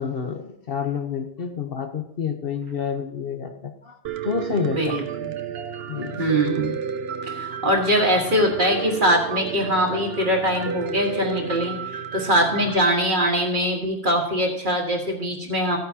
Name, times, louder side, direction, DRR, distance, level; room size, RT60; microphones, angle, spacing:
voice 1, 0.0-4.0 4.2-5.0 5.9-6.2, left 6 dB, 60° left, 5 dB, 1.1 m, -28 dB
Piano, 4.0-12.8, right 7 dB, 65° right, 0.9 m, -31 dB
voice 2, 4.6-5.3 6.2-6.7 7.2-11.8 12.1-15.8, equal, 45° right, 1 dB, 1.7 m, -22 dB
14.0 x 9.3 x 2.8 m, 0.74 s
omnidirectional pair, 1.2 m